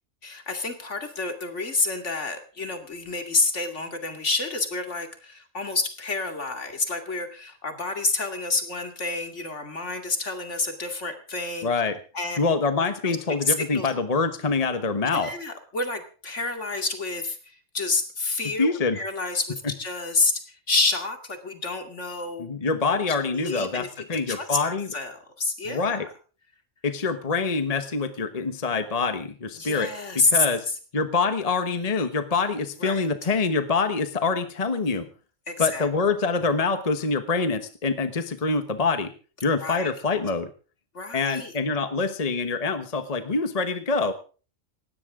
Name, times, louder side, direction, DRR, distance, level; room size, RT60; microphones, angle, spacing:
voice 1, 0.2-11.7 12.1-12.4 13.0-13.2 13.4-13.9 15.1-22.5 22.9-23.0 23.3-26.1 29.6-30.5 32.8-33.1 35.5-35.9 39.6-39.9 40.9-41.5, left 3 dB, 65° left, 6 dB, 2.7 m, -29 dB
voice 2, 11.6-12.0 12.4-15.3 18.6-19.0 22.4-24.9 25.7-26.1 26.8-30.7 30.9-35.1 35.6-39.1 39.4-40.5 41.1-44.1, left 4 dB, 30° left, 9 dB, 1.2 m, -25 dB
19.0 x 16.5 x 3.7 m, 0.38 s
omnidirectional pair, 1.3 m